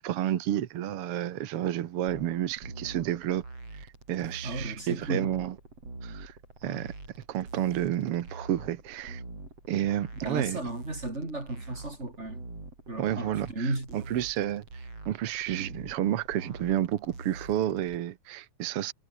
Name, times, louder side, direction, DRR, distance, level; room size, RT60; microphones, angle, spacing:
voice 1, 0.0-3.4 3.7-5.6 6.0-6.9 7.3-9.2 9.7-10.6 13.0-18.9, right 12 dB, 60° right, 1.5 m, -31 dB
sound 1, 2.1-18.0, right 3 dB, 45° right, 9.0 m, -45 dB
voice 2, 4.4-5.4 10.2-12.4 12.9-14.1, right 2 dB, 20° right, 4.7 m, -34 dB
omnidirectional pair, 3.7 m